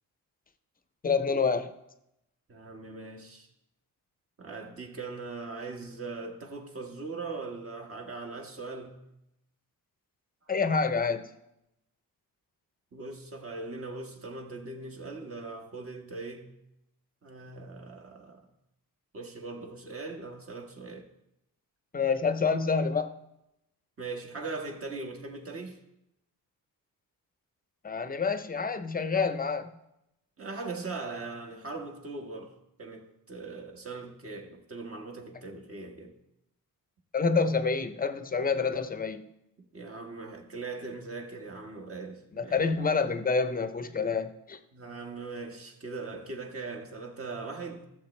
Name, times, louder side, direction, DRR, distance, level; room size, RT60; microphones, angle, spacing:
voice 1, 1.0-1.7 10.5-11.2 21.9-23.1 27.8-29.7 37.1-39.2 42.3-44.6, left 5 dB, 25° left, 0.7 m, -27 dB
voice 2, 2.5-3.5 4.4-9.0 12.9-16.5 17.2-18.5 19.1-21.1 24.0-25.8 30.4-36.1 39.6-42.7 44.7-47.8, right 3 dB, 40° right, 1.5 m, -40 dB
14.5 x 7.2 x 3.2 m
cardioid pair, 110°, 35 cm